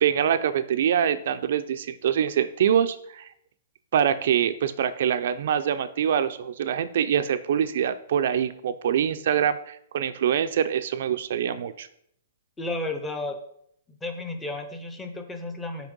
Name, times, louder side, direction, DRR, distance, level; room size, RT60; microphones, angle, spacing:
voice 1, 0.0-3.3 3.9-11.9, right 9 dB, 55° right, 10 dB, 0.4 m, -24 dB
voice 2, 12.6-13.4 13.9-15.9, left 2 dB, 5° left, 6 dB, 0.6 m, -33 dB
6.0 x 4.3 x 5.3 m, 0.69 s
hypercardioid pair, 160°, 0 cm